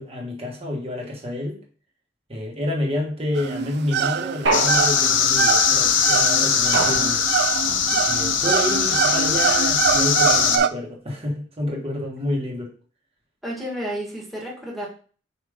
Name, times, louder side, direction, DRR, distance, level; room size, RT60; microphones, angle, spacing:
voice 1, 0.0-1.6 2.3-7.2 8.1-12.7, left 1 dB, 30° right, -1 dB, 1.7 m, -29 dB
sound 1, 3.4-10.7, right 7 dB, 60° right, 0.4 m, -24 dB
sound 2, 4.5-10.6, left 7 dB, 85° left, 0.8 m, -21 dB
sound 3, 4.5-5.5 6.7-7.6, right 2 dB, 90° right, 1.4 m, -26 dB
voice 2, 7.7-8.0 13.4-14.9, equal, ahead, -4 dB, 1.6 m, -32 dB
5.4 x 5.1 x 3.6 m, 0.41 s
head